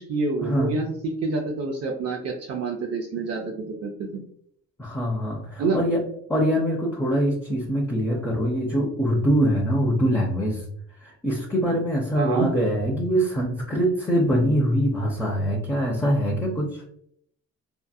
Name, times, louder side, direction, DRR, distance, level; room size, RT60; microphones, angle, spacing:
voice 1, 0.1-0.9 1.2-4.2 5.6-5.8 12.1-12.5, right 3 dB, 55° right, 1 dB, 0.5 m, -27 dB
voice 2, 4.8-6.0 6.3-10.6 11.0-16.8, equal, 10° left, -3 dB, 0.5 m, -23 dB
2.7 x 2.4 x 2.3 m, 0.67 s
cardioid pair, 90°, 30 cm